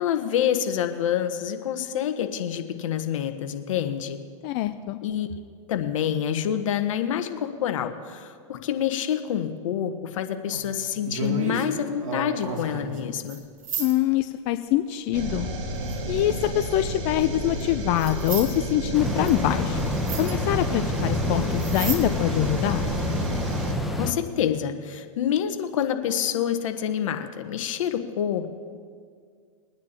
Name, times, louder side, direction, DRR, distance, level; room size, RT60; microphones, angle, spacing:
voice 1, 0.0-4.2 5.0-5.3 5.7-13.4 21.3-21.5 24.0-28.5, left 9 dB, 75° left, 8 dB, 1.2 m, -27 dB
voice 2, 4.4-5.0 13.8-15.5 16.1-19.8 20.2-22.9, left 14 dB, 45° left, 9 dB, 0.5 m, -24 dB
sound 1, 10.5-11.7 12.0-13.0 13.3-13.4 13.6-13.9 15.9-16.4 17.6-17.7 18.0-18.5 19.3-19.4 19.8-19.9 20.1-20.3 21.5-22.0 22.4-22.5, right 4 dB, 80° right, 2.3 m, -32 dB
sound 2, 15.1-23.7, right 1 dB, 60° right, 2.1 m, -31 dB
sound 3, 18.9-24.1, left 1 dB, ahead, 1.1 m, -28 dB
22.5 x 9.6 x 2.9 m, 2.1 s
hypercardioid pair, 115°, 17 cm